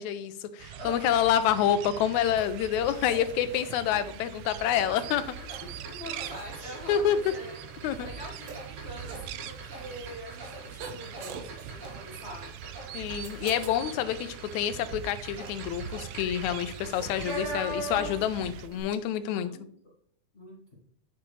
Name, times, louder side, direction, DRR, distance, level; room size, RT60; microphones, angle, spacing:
voice 1, 0.0-5.2 6.9-7.2 7.8-8.1 12.9-19.5, left 10 dB, 80° left, 12 dB, 1.9 m, -28 dB
sound 1, 0.6-18.7, right 10 dB, 90° right, 2.1 m, -42 dB
voice 2, 0.7-1.3 3.9-4.2 4.8-7.6 8.0-12.5 18.4-19.7 20.3-20.8, right 1 dB, 30° left, -4 dB, 1.4 m, -44 dB
sound 2, 2.2-19.0, right 6 dB, 70° right, 2.0 m, -50 dB
sound 3, 4.6-18.4 18.6-18.8, right 1 dB, 55° right, 3.1 m, -42 dB
9.7 x 6.9 x 3.2 m, 0.66 s
omnidirectional pair, 3.5 m